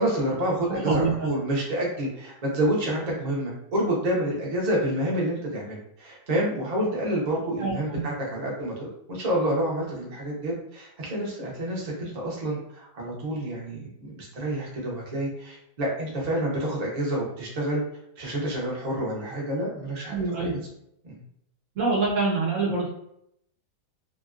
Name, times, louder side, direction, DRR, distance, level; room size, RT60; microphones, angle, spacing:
voice 1, 0.0-17.8 18.2-20.2 20.4-20.6 21.0-21.2, right 1 dB, 35° right, -4 dB, 0.6 m, -28 dB
voice 2, 7.6-8.0 20.1-20.6 21.8-22.9, right 3 dB, 60° right, -5 dB, 0.9 m, -25 dB
3.0 x 2.6 x 2.4 m, 0.74 s
omnidirectional pair, 1.8 m